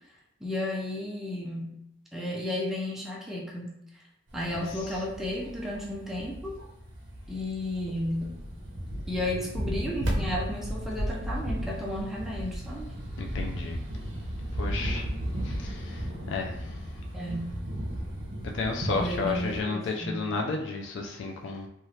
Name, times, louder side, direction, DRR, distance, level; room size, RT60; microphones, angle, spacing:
voice 1, 0.4-1.8 2.1-3.7 4.3-6.6 7.3-8.3 9.1-12.9 17.1-17.5 18.9-20.3, left 1 dB, ahead, -4 dB, 0.5 m, -33 dB
sound 1, 4.3-19.6, equal, 60° right, 0.7 m, -35 dB
voice 2, 13.2-13.8 14.5-15.1 15.4-16.9 18.5-21.7, left 3 dB, 60° left, 2 dB, 0.3 m, -32 dB
3.0 x 2.4 x 2.7 m, 0.80 s
head